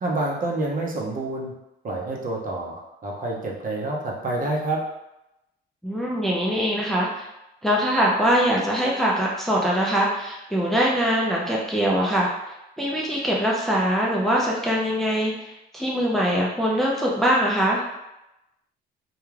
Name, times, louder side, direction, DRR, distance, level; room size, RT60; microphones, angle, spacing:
voice 1, 0.0-1.5 1.8-4.8, right 2 dB, 45° right, -2 dB, 0.7 m, -28 dB
voice 2, 5.8-7.3 7.6-12.3 12.8-17.8, equal, ahead, -4 dB, 0.5 m, -22 dB
2.3 x 2.3 x 3.2 m, 0.91 s
cardioid pair, 90°, 20 cm